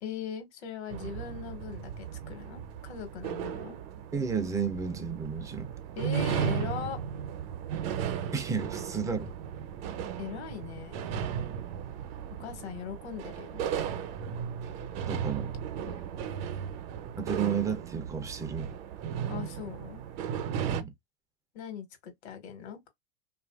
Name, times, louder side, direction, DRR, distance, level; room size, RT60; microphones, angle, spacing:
voice 1, 0.0-3.8 5.9-7.0 10.2-11.0 12.4-13.6 15.9-16.2 19.3-20.0 21.5-22.9, left 7 dB, 80° left, 1.2 m, -40 dB
sound 1, 0.9-20.8, right 8 dB, 65° right, 0.6 m, -36 dB
voice 2, 4.1-5.7 8.3-9.3 15.1-15.5 17.2-18.8 20.6-20.9, right 6 dB, 10° right, 0.3 m, -32 dB
2.8 x 2.4 x 2.2 m
supercardioid pair, 125°, 33 cm